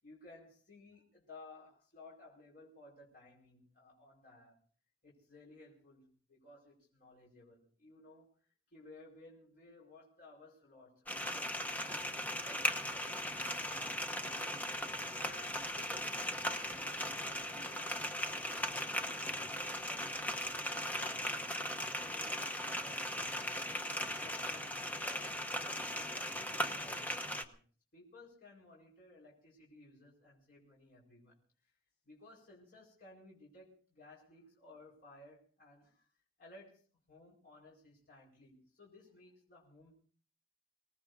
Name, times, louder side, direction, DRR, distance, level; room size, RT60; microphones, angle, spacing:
voice 1, 0.0-4.6 5.0-8.3 8.7-12.1 12.4-14.5 15.2-21.8 22.0-23.1 23.7-27.6 27.9-31.4 32.0-36.1 36.4-36.8 37.1-39.9, left 2 dB, 55° left, -4 dB, 4.9 m, -58 dB
sound 1, 11.1-27.4, equal, 10° left, 1.1 m, -38 dB
26.0 x 19.0 x 2.7 m, 0.41 s
head